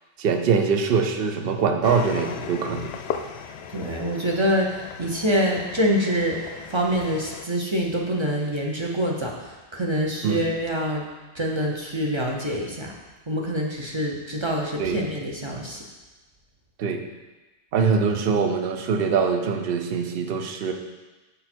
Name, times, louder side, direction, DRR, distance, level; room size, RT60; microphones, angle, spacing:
voice 1, 0.2-2.9 10.2-10.4 14.8-15.0 16.8-17.0 17.7-20.7, right 5 dB, 60° right, 5 dB, 0.8 m, -23 dB
sound 1, 1.8-7.4, left 7 dB, 65° left, 0.7 m, -36 dB
voice 2, 3.7-11.0 11.3-12.9 13.3-15.8, equal, 25° right, -1 dB, 0.8 m, -25 dB
6.6 x 5.4 x 4.4 m, 1.2 s
omnidirectional pair, 1.2 m